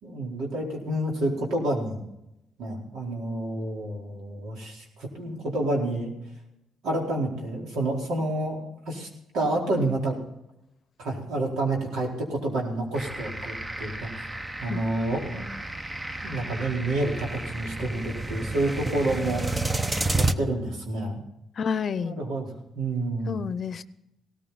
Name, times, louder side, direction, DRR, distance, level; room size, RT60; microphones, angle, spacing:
voice 1, 0.0-2.0 2.6-6.1 6.8-9.1 9.3-10.2 11.0-14.3 14.6-15.5 16.2-19.8 20.2-21.2 22.0-22.5 22.7-23.4, right 2 dB, 80° right, -1 dB, 4.2 m, -29 dB
sound 1, 12.9-20.3, right 2 dB, 15° right, 0.8 m, -31 dB
voice 2, 21.6-22.1 23.3-23.8, left 6 dB, 50° left, 15 dB, 0.7 m, -29 dB
18.0 x 14.0 x 4.1 m, 0.87 s
cardioid pair, 90°, 0 cm